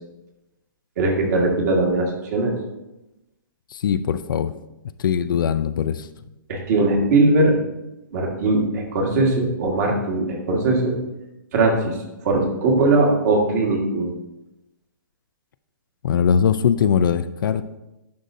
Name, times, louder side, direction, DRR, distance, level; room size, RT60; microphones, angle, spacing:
voice 1, 1.0-2.6 6.5-7.6 8.1-11.0 11.5-12.0 12.2-14.1, right 2 dB, 50° right, 0 dB, 1.7 m, -20 dB
voice 2, 3.7-4.5 5.0-6.1 16.0-17.8, left 7 dB, 70° left, 13 dB, 0.4 m, -21 dB
10.5 x 4.0 x 2.7 m, 0.95 s
hypercardioid pair, 145°, 11 cm